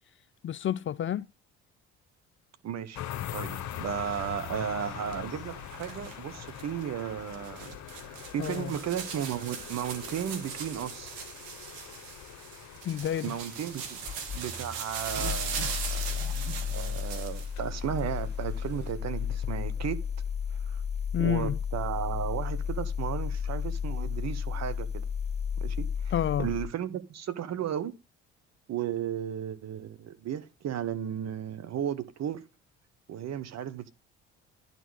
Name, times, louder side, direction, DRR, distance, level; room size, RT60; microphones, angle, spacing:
voice 1, 0.4-1.3 8.4-8.7 12.8-13.3 21.1-21.6 26.1-26.5, left 10 dB, 35° left, 0.4 m, -29 dB
voice 2, 2.6-3.0 3.3-7.8 8.0-11.2 13.2-14.0 14.3-20.0 20.5-20.8 21.2-25.1 25.6-26.1 26.4-28.0 28.7-32.5 33.1-33.9, right 9 dB, 50° right, 1.1 m, -35 dB
sound 1, 3.0-20.2, left 12 dB, 60° left, 0.9 m, -44 dB
sound 2, 3.3-17.6 17.9-18.9, right 7 dB, 80° right, 1.5 m, -40 dB
sound 3, 14.1-26.7, left 7 dB, 20° left, 1.8 m, -33 dB
11.0 x 4.2 x 6.3 m
hypercardioid pair, 55°, 33 cm